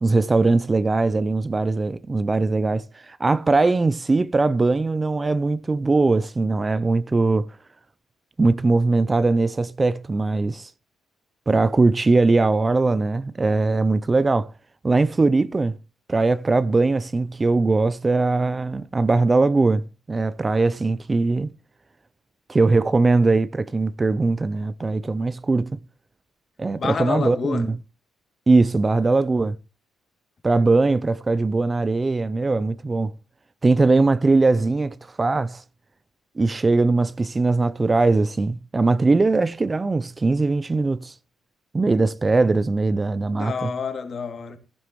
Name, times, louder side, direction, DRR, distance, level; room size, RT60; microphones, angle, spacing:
voice 1, 0.0-7.5 8.4-10.7 11.5-14.5 14.8-15.8 16.1-21.5 22.5-25.8 26.6-27.7 28.5-29.6 30.4-33.1 33.6-35.6 36.4-41.1 41.7-43.7, right 3 dB, 25° right, 0.5 m, -20 dB
voice 2, 26.8-27.7 43.3-44.6, left 6 dB, 45° left, 2.4 m, -28 dB
15.5 x 11.5 x 3.1 m
cardioid pair, 90°, 0 cm